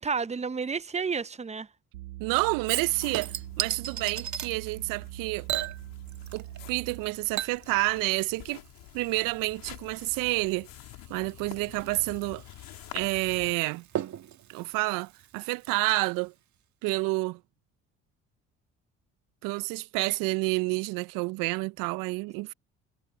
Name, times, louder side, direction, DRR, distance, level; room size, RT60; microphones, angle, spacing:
voice 1, 0.0-1.7, right 5 dB, 20° right, 0.8 m, -31 dB
sound 1, 1.9-7.2, right 17 dB, 90° right, 2.1 m, -42 dB
voice 2, 2.2-5.5 6.3-8.6 8.9-10.7 11.1-12.4 12.9-13.8 14.5-16.3 16.8-17.4 19.4-22.5, right 24 dB, 70° right, 0.6 m, -29 dB
Chink clink / Liquid, 2.7-4.5 5.5-6.6 6.9-15.9 16.3-16.4, right 10 dB, 55° right, 1.8 m, -38 dB
sound 2, 2.8-13.5, left 17 dB, 70° left, 3.4 m, -49 dB
hypercardioid pair, 60°, 35 cm